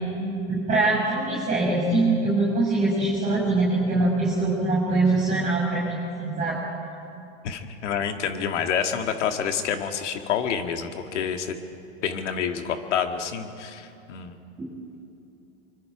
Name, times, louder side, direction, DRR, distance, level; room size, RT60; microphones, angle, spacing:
voice 1, 0.5-6.0 6.2-6.6 14.6-14.7, right 2 dB, 20° right, -4 dB, 7.0 m, -23 dB
voice 2, 7.4-11.6 12.0-14.4, left 7 dB, 80° left, 6 dB, 2.0 m, -28 dB
24.5 x 24.5 x 5.0 m, 2.7 s
hypercardioid pair, 125°, 35 cm